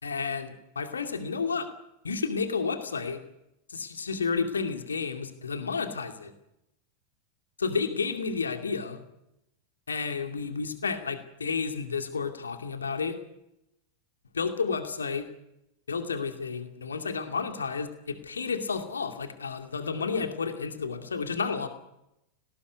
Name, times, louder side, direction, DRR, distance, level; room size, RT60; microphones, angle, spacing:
voice 1, 0.0-1.7 2.0-3.2 3.7-6.3 7.6-9.0 9.9-13.2 14.3-15.3 15.9-21.7, left 5 dB, 75° left, 7 dB, 2.4 m, -31 dB
19.5 x 18.5 x 9.6 m, 0.85 s
figure-of-eight pair, 90°, 0 cm